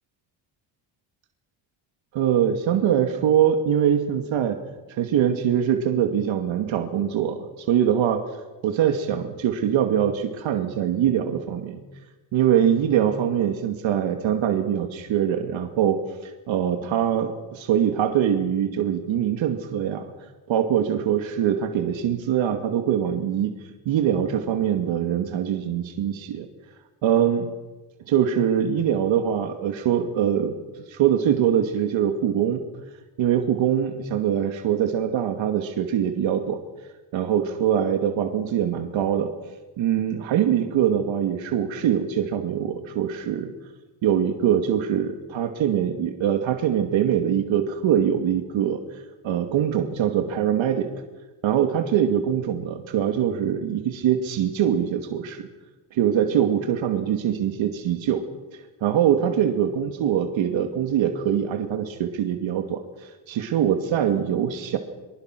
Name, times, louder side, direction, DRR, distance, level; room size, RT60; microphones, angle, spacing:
voice 1, 2.1-4.6 5.0-8.2 8.6-11.8 12.3-20.0 20.5-23.5 23.9-26.5 27.0-27.5 28.1-30.6 30.9-32.6 33.2-36.6 37.1-39.3 39.8-43.5 44.0-48.8 49.2-50.9 51.4-55.5 55.9-58.2 58.5-64.8, right 9 dB, 75° right, 5 dB, 2.5 m, -23 dB
25.5 x 24.0 x 6.1 m, 1.2 s
cardioid pair, 100°, 47 cm